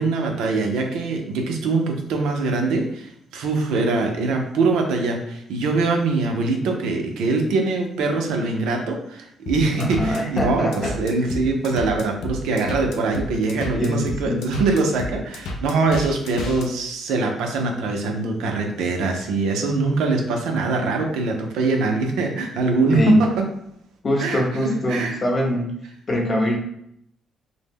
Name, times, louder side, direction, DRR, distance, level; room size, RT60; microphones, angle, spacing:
voice 1, 0.0-23.3 24.2-25.2, right 3 dB, 80° right, 2 dB, 0.4 m, -23 dB
sound 1, 9.5-16.7, left 1 dB, 75° left, 0.4 m, -31 dB
voice 2, 9.8-11.0 13.8-14.5 22.9-23.3 24.0-25.8 26.1-26.6, left 1 dB, 45° left, 0 dB, 0.7 m, -23 dB
2.0 x 2.0 x 3.4 m, 0.72 s
supercardioid pair, 60°, 0 cm